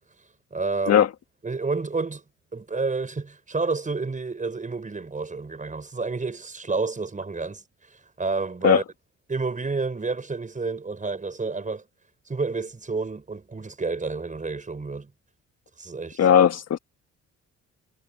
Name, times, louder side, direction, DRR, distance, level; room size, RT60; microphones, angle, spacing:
voice 1, 0.5-1.1 1.4-2.2 2.5-8.8 9.3-11.8 12.3-15.1 15.8-16.2, right 4 dB, 25° right, 5.6 m, -30 dB
voice 2, 16.2-16.8, left 9 dB, 55° left, 1.5 m, -17 dB
cardioid pair, 90°, 30 cm